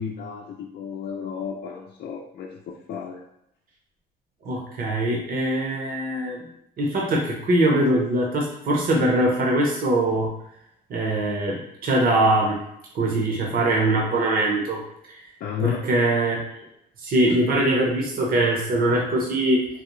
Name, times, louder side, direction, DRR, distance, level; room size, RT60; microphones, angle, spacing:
voice 1, 0.0-3.2 15.4-15.8, left 7 dB, 60° left, -2 dB, 0.5 m, -32 dB
voice 2, 4.4-6.5 6.8-10.3 10.9-12.6 12.9-14.8 15.1-15.2 15.6-16.4 17.0-19.7, right 1 dB, 55° right, -1 dB, 0.9 m, -22 dB
4.0 x 2.3 x 3.0 m, 0.78 s
cardioid pair, 120°, 18 cm